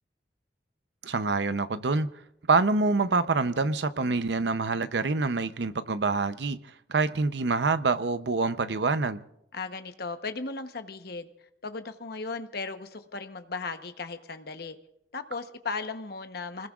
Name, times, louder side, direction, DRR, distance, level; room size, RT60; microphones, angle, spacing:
voice 1, 1.0-2.1 2.5-6.6 6.9-9.2, right 3 dB, 70° right, 0.7 m, -26 dB
voice 2, 9.5-11.3 11.6-14.8 15.1-16.7, left 4 dB, 60° left, 1.0 m, -36 dB
29.0 x 20.0 x 2.5 m
head